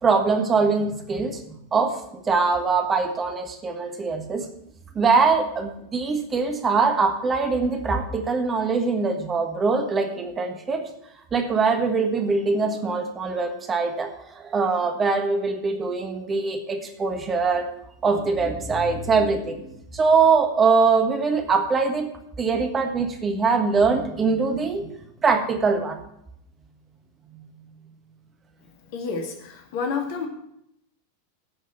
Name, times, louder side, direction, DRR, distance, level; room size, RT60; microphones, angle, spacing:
voice 1, 0.0-4.5 4.9-10.9 11.3-17.7 18.0-22.1 22.4-24.9 25.2-26.0, right 4 dB, 20° right, 4 dB, 1.5 m, -23 dB
voice 2, 28.8-30.3, left 5 dB, 50° left, 3 dB, 2.4 m, -30 dB
14.5 x 6.3 x 5.9 m, 0.76 s
figure-of-eight pair, 90°, 0 cm